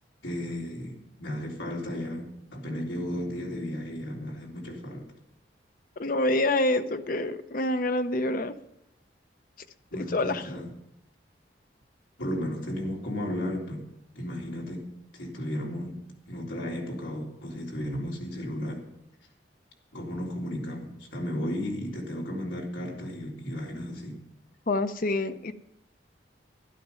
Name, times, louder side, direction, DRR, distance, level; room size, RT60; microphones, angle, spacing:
voice 1, 0.2-5.1 9.9-10.7 12.2-13.9 14.2-14.9 15.1-18.8 19.9-24.2, left 1 dB, 85° left, -2 dB, 3.6 m, -34 dB
voice 2, 6.0-8.5 9.9-10.5 24.7-25.5, left 2 dB, 45° left, 11 dB, 0.7 m, -27 dB
12.5 x 12.0 x 5.6 m, 0.83 s
head